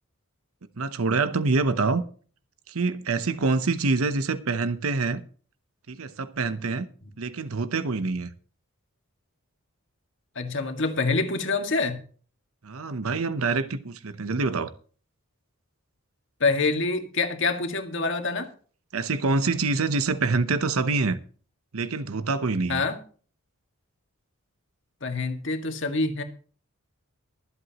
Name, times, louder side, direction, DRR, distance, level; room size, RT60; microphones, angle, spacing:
voice 1, 0.8-2.0 2.7-5.2 5.9-6.9 7.2-8.3 12.6-14.7 18.9-21.2 21.7-22.8, right 3 dB, 75° right, 0.8 m, -26 dB
voice 2, 10.4-12.0 16.4-18.5 22.7-23.0 25.0-26.2, left 3 dB, 55° left, 1.9 m, -26 dB
23.5 x 8.0 x 2.9 m
head